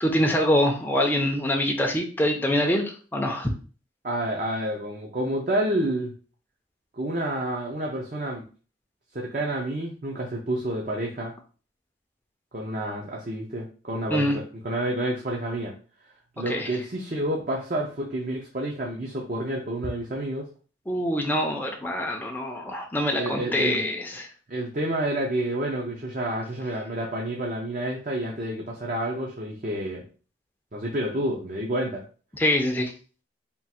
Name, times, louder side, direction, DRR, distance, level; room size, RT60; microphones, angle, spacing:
voice 1, 0.0-3.5 14.1-14.4 16.5-16.7 20.9-24.3 32.3-32.9, left 1 dB, 10° left, 1 dB, 0.5 m, -25 dB
voice 2, 4.0-6.1 6.9-8.4 9.1-11.3 12.5-15.7 16.4-20.5 23.2-23.9 24.5-30.1 30.7-32.0, right 1 dB, 45° right, -1 dB, 0.6 m, -29 dB
3.6 x 2.5 x 4.2 m, 0.38 s
head